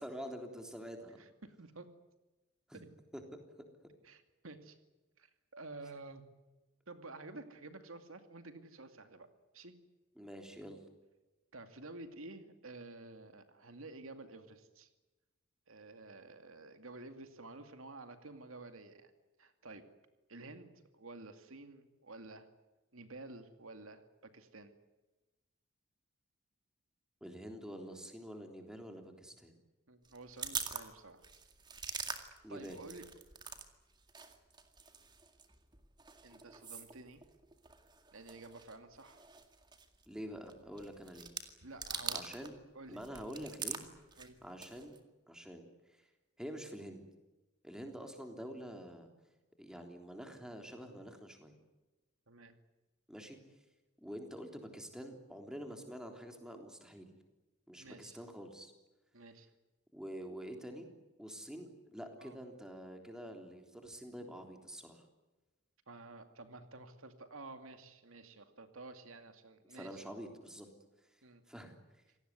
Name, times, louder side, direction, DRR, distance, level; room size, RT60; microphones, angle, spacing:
voice 1, 0.0-1.2 2.7-2.8 3.1-3.2 10.2-10.8 27.2-29.5 32.4-32.8 40.1-41.3 42.1-42.5 42.9-43.8 44.4-45.0 45.3-45.6 45.9-46.0 46.4-47.0 47.6-49.1 49.6-51.5 53.1-53.4 54.0-57.1 57.7-58.7 59.9-60.9 61.2-65.0 69.7-70.7 71.5-71.7, equal, 5° right, 4 dB, 3.4 m, -47 dB
voice 2, 1.2-1.9 2.7-2.9 4.0-4.8 5.2-6.2 6.9-9.3 9.5-9.7 11.5-14.9 15.7-19.1 19.4-19.8 20.3-22.5 22.9-24.7 29.9-31.3 32.5-33.1 36.2-37.2 38.1-39.3 41.6-42.3 42.7-43.0 44.2-44.4 52.3-52.5 57.8-58.2 59.1-59.5 62.2-62.4 65.9-70.0 71.2-71.4, right 2 dB, 85° right, 8 dB, 2.4 m, -51 dB
sound 1, 30.0-33.7 33.9-42.6 42.9-45.0, right 5 dB, 20° right, 2.1 m, -45 dB
27.5 x 18.5 x 9.6 m, 1.1 s
head